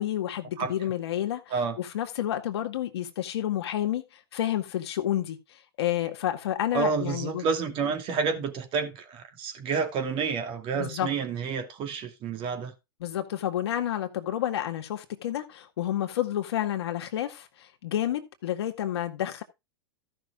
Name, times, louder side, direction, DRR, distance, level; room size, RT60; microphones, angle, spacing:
voice 1, 0.0-4.0 4.3-5.4 5.8-7.5 10.8-11.1 13.0-19.4, left 11 dB, 80° left, 1.9 m, -30 dB
voice 2, 6.7-12.7, right 5 dB, 40° right, 2.7 m, -29 dB
14.0 x 6.0 x 3.7 m
hypercardioid pair, 115°, 13 cm